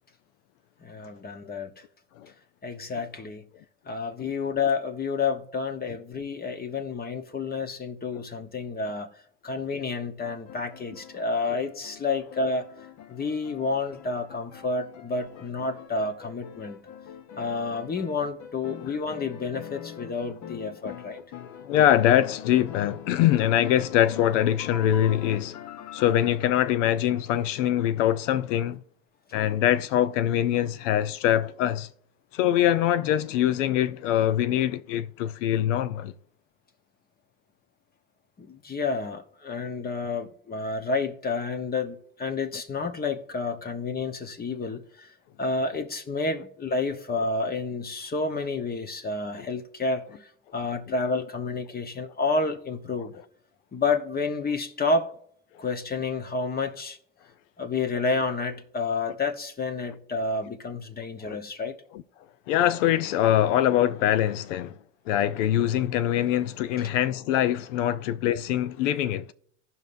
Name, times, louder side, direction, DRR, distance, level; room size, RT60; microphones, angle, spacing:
voice 1, 0.8-1.7 2.6-3.4 3.8-9.1 9.4-12.7 13.1-16.8 17.4-21.2 38.4-53.2 53.7-55.1 55.6-57.0 57.6-61.8, left 3 dB, 25° left, 1.0 m, -30 dB
sound 1, 10.2-26.5, left 9 dB, 50° left, 1.0 m, -44 dB
voice 2, 21.4-25.6 25.9-28.8 29.3-31.9 32.3-36.1 49.4-49.5 61.2-61.4 61.9-62.0 62.5-64.8 65.1-69.3, left 11 dB, 85° left, 0.6 m, -23 dB
15.5 x 5.5 x 2.6 m
supercardioid pair, 95°, 36 cm